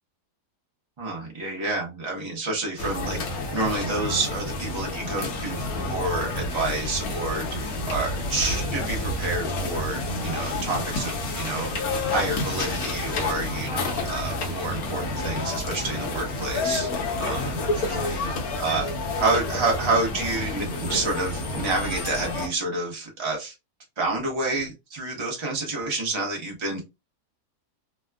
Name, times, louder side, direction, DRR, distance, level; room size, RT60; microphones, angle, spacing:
voice 1, 1.0-3.2 3.5-11.7 12.1-16.9 17.2-18.2 18.6-18.9 19.2-23.5 24.0-26.8, right 2 dB, 25° right, 0.7 m, -29 dB
sound 1, 2.8-22.5, left 2 dB, 65° left, 1.2 m, -29 dB
3.3 x 2.2 x 2.3 m
omnidirectional pair, 1.7 m